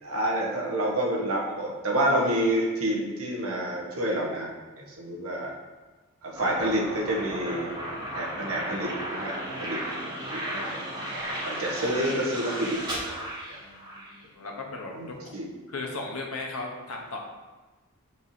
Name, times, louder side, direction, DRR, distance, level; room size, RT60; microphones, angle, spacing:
voice 1, 0.0-4.5 4.8-5.5 6.2-7.7 8.1-9.8 10.3-10.8 11.4-13.6 14.9-15.5, right 1 dB, 70° right, -2 dB, 1.2 m, -28 dB
sound 1, 6.3-14.1, right 1 dB, 20° right, 1.8 m, -34 dB
voice 2, 13.6-15.3 15.7-17.2, left 3 dB, 75° left, 0 dB, 1.0 m, -37 dB
7.4 x 4.6 x 2.8 m, 1.2 s
head